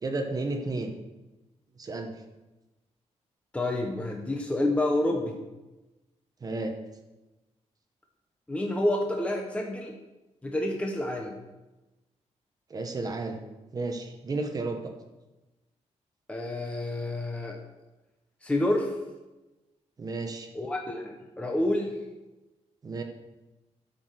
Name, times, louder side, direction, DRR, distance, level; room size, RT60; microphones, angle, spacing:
voice 1, 0.0-0.9 1.8-2.2 6.4-6.7 12.7-13.4 13.7-14.9 20.0-20.5 22.8-23.0, right 3 dB, 30° right, 4 dB, 1.1 m, -32 dB
voice 2, 3.5-5.4 8.5-9.9 10.4-11.4 16.3-17.6 18.4-19.0 20.5-22.0, left 1 dB, 10° left, 1 dB, 1.0 m, -28 dB
12.0 x 5.9 x 6.6 m, 1.1 s
wide cardioid pair, 170°, 12 cm